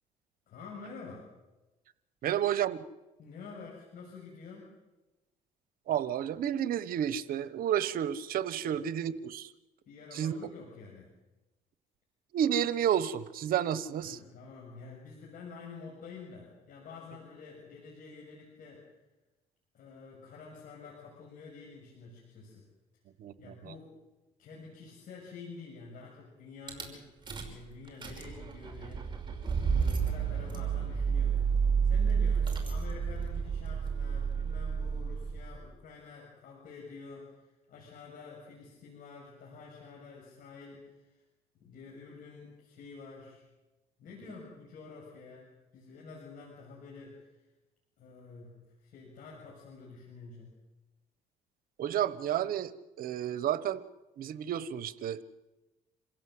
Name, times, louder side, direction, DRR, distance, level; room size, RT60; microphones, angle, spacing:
voice 1, 0.5-1.3 2.2-2.4 3.2-4.7 8.6-8.9 9.9-11.1 14.0-18.8 19.7-22.7 23.4-23.9 24.4-29.1 29.7-31.5 31.8-41.2 41.6-43.4 44.0-47.4 48.0-50.5, left 4 dB, 60° left, -3 dB, 6.8 m, -49 dB
voice 2, 2.2-2.8 5.9-9.5 10.1-10.3 12.3-14.2 23.2-23.3 51.8-52.7 53.0-53.8 54.2-55.2, right 10 dB, 65° right, 15 dB, 1.2 m, -31 dB
Rattle / Car / Engine starting, 26.7-26.8 27.3-27.6 27.9-35.6, right 6 dB, 30° right, 5.2 m, -30 dB
27.5 x 16.0 x 7.9 m, 1.1 s
cardioid pair, 100°, 16 cm